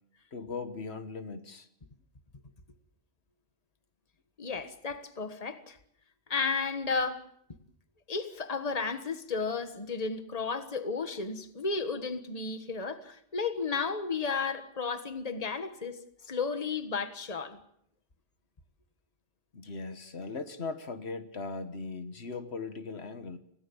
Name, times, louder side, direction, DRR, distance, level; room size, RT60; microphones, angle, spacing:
voice 1, 0.3-1.7 19.5-23.4, left 4 dB, 75° left, 1.7 m, -39 dB
voice 2, 4.4-5.8 6.3-7.2 8.1-16.0 16.3-17.6, left 4 dB, 35° left, 1.6 m, -33 dB
27.0 x 17.5 x 7.1 m
omnidirectional pair, 1.1 m